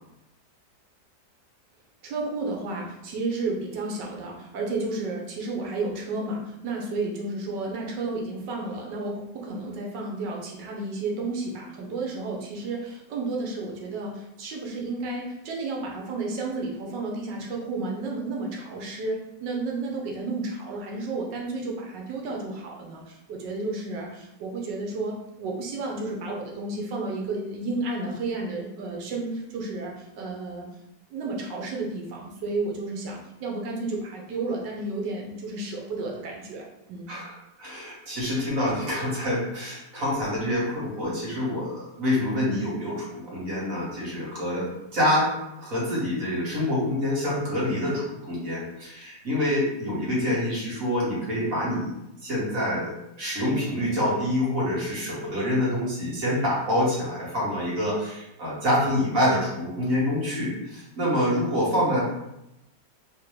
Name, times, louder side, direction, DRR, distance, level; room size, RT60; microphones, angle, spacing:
voice 1, 2.0-30.7 31.1-37.1, right 3 dB, 80° right, -1 dB, 1.4 m, -32 dB
voice 2, 37.1-45.3 45.6-51.9 52.2-62.0, left 1 dB, 50° right, -6 dB, 1.7 m, -26 dB
3.7 x 2.7 x 3.1 m, 0.86 s
omnidirectional pair, 1.9 m